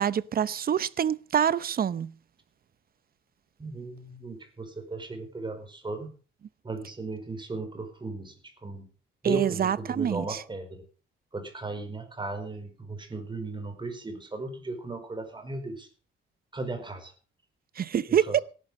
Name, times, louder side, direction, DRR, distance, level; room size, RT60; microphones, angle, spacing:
voice 1, 0.0-2.1 9.2-10.4 17.8-18.4, right 8 dB, 50° right, 0.8 m, -26 dB
voice 2, 3.6-6.1 6.6-8.9 9.2-10.8 11.3-15.9 16.5-17.1 18.1-18.4, right 3 dB, 25° right, 4.9 m, -36 dB
18.0 x 11.5 x 5.4 m
cardioid pair, 90°, 20 cm